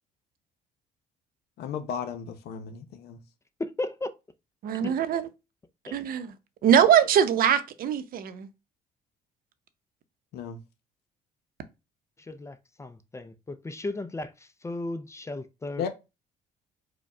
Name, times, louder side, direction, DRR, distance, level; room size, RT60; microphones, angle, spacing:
voice 1, 1.6-3.2 10.3-10.6 15.8-15.9, left 7 dB, 70° left, 0.8 m, -34 dB
voice 2, 3.6-4.1 4.7-4.9 5.9-6.0 12.2-15.9, left 2 dB, 15° left, 0.5 m, -35 dB
voice 3, 4.6-5.3 5.9-6.3 6.6-8.5, right 9 dB, 60° right, 0.7 m, -22 dB
4.9 x 2.2 x 4.8 m
cardioid pair, 110°, 17 cm